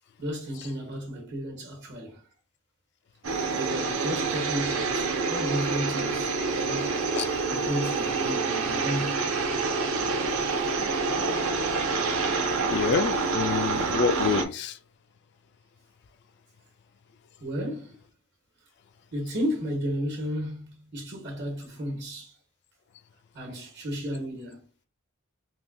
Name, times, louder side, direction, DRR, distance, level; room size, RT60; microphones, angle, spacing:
voice 1, 0.2-2.2 3.4-7.0 7.5-9.2 17.4-18.0 19.1-22.3 23.3-24.6, equal, 55° right, 1.2 m, -33 dB
sound 1, 3.2-14.4, right 4 dB, 70° right, 0.6 m, -27 dB
voice 2, 12.7-14.8, left 5 dB, 55° left, 0.3 m, -27 dB
3.6 x 2.2 x 2.6 m
head